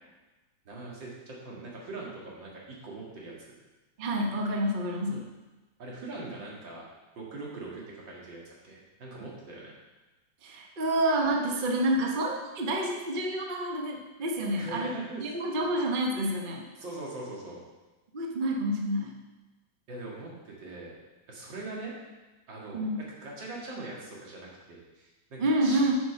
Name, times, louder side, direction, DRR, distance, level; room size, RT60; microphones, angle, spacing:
voice 1, 0.7-3.5 5.8-6.8 7.1-9.7 14.6-15.2 16.8-17.6 19.9-21.0 21.3-21.9 22.5-25.9, right 2 dB, 75° right, -4 dB, 2.7 m, -41 dB
voice 2, 4.0-5.2 10.4-14.9 15.2-16.6 18.1-19.1 22.7-23.0 25.4-25.9, right 1 dB, 35° right, 1 dB, 0.9 m, -28 dB
8.0 x 6.1 x 5.7 m, 1.1 s
omnidirectional pair, 2.0 m